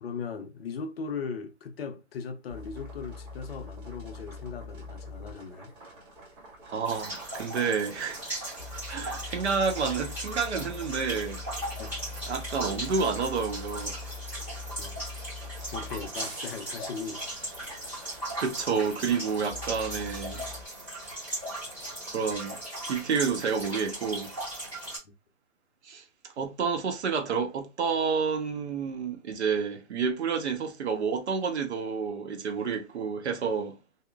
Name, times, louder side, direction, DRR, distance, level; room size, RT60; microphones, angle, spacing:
voice 1, 0.0-5.7 11.7-12.0 14.8-15.0 15.7-17.2, left 5 dB, 50° left, 0.5 m, -38 dB
sound 1, 2.5-20.7, left 3 dB, 40° right, 1.6 m, -43 dB
voice 2, 6.7-8.2 8.9-11.4 12.3-14.0 15.6-15.7 18.4-20.4 22.1-22.6 22.9-24.3 25.8-26.0 26.4-33.8, right 5 dB, 60° right, 0.8 m, -29 dB
sound 2, 6.8-25.0, right 1 dB, 5° right, 1.0 m, -38 dB
2.9 x 2.0 x 2.2 m
hypercardioid pair, 155°, 38 cm